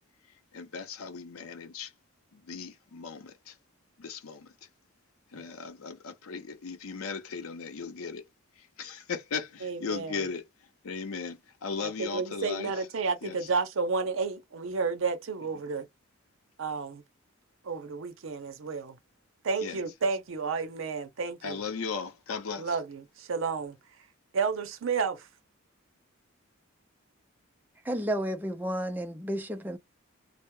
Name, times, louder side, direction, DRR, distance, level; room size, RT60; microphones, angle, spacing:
voice 1, 0.2-1.9 2.3-3.6 4.0-4.7 5.3-8.2 8.5-12.9 13.2-13.5 19.6-19.8 21.4-22.8, left 5 dB, 85° left, 0.6 m, -37 dB
voice 2, 9.6-10.2 11.8-15.9 16.6-17.0 17.6-19.0 19.4-21.6 22.6-23.8 24.3-25.3, right 4 dB, 65° right, 0.6 m, -31 dB
voice 3, 27.8-29.8, equal, 10° right, 0.3 m, -32 dB
2.2 x 2.0 x 3.0 m
head